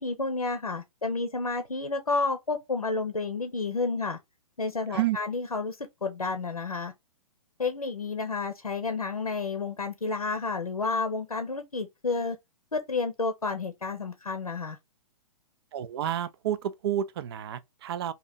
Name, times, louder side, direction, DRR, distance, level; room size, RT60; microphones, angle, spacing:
voice 1, 0.0-4.2 4.6-6.9 7.6-12.4 12.7-14.8, left 3 dB, 85° left, 0.6 m, -30 dB
voice 2, 15.7-18.1, right 11 dB, 45° right, 0.4 m, -30 dB
3.0 x 2.8 x 3.8 m
figure-of-eight pair, 115°, 18 cm